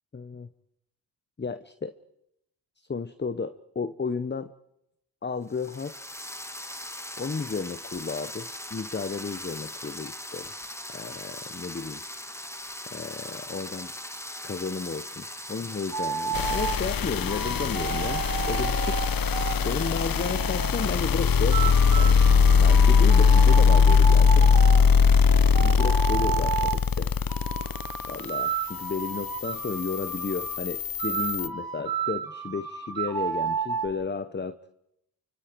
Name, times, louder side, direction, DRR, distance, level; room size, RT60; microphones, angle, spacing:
voice 1, 0.1-0.5 1.4-1.9 2.8-4.5 5.2-6.0 7.2-10.5 10.9-12.0 12.9-13.9 14.4-19.1 19.6-22.2 22.6-24.7 25.6-27.1 28.1-34.6, left 4 dB, 25° left, 13 dB, 0.9 m, -33 dB
sound 1, 5.5-17.2, left 1 dB, 5° left, 1.6 m, -40 dB
sound 2, 15.9-16.8 17.3-21.0 21.5-26.8 27.3-30.6 31.0-33.9, right 7 dB, 50° right, 2.7 m, -32 dB
sound 3, 16.3-31.5, left 6 dB, 50° left, 1.0 m, -21 dB
29.5 x 25.0 x 4.7 m, 0.82 s
cardioid pair, 70°, 44 cm